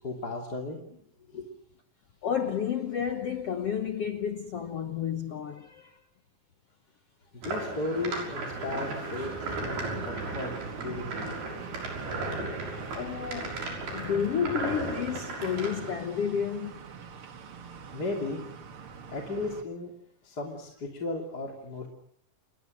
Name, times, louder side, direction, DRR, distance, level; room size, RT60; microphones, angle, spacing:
voice 1, 0.0-1.0 1.3-1.5 7.3-9.3 9.6-11.3 17.9-18.4 19.1-19.9 20.2-21.9, left 2 dB, 30° left, 3.0 m, -35 dB
voice 2, 2.2-6.0 12.0-12.2 12.9-13.6 13.9-16.8, left 8 dB, 70° left, 1.4 m, -31 dB
sound 1, 7.4-15.9, right 2 dB, 80° right, 8.2 m, -36 dB
sound 2, 7.9-19.6, right 6 dB, 45° right, 2.1 m, -43 dB
29.5 x 21.5 x 6.6 m
omnidirectional pair, 4.4 m